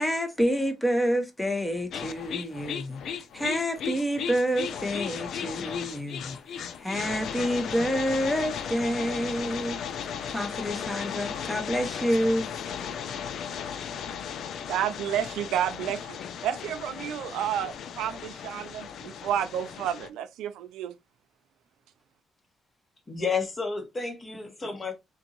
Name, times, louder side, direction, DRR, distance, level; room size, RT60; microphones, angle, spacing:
voice 1, 0.0-9.8 10.3-12.5, equal, 10° left, 0.9 m, -28 dB
sound 1, 1.9-20.1, left 7 dB, 70° left, 0.4 m, -36 dB
voice 2, 14.7-16.2 16.4-20.9, right 10 dB, 90° right, 0.4 m, -30 dB
voice 3, 23.1-24.9, left 5 dB, 30° left, 1.2 m, -31 dB
3.8 x 2.5 x 2.9 m
cardioid pair, 90°, 0 cm